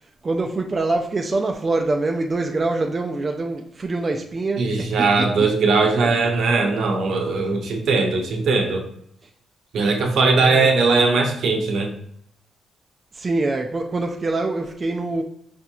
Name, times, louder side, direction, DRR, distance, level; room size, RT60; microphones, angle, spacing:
voice 1, 0.0-5.5 5.8-6.1 10.4-10.7 13.1-15.2, right 2 dB, 35° right, 0.4 m, -25 dB
voice 2, 4.6-8.8 9.7-11.9, right 3 dB, 70° right, 0.7 m, -19 dB
5.0 x 2.9 x 2.3 m
cardioid pair, 85°, 0 cm